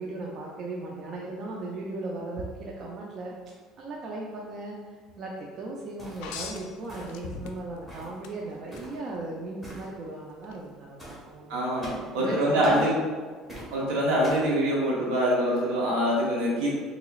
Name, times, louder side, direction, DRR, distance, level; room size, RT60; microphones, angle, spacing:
voice 1, 0.0-3.3 3.8-4.8 5.2-11.6 12.2-12.9, right 2 dB, 50° right, -2 dB, 0.5 m, -37 dB
sound 1, 6.0-6.3 6.9-7.3 7.9-8.2 8.7-9.0 9.6-9.9 11.0-11.2 11.8-12.1 12.6-12.9 13.5-13.7 14.2-14.5, right 1 dB, 5° right, 1.4 m, -42 dB
sound 2, 6.2-7.8 8.2-8.9 10.4-10.6, left 5 dB, 85° left, 0.3 m, -39 dB
voice 2, 11.5-13.0 13.7-16.7, equal, 85° right, -4 dB, 1.0 m, -24 dB
3.8 x 2.9 x 2.4 m, 1.5 s
supercardioid pair, 105°, 0 cm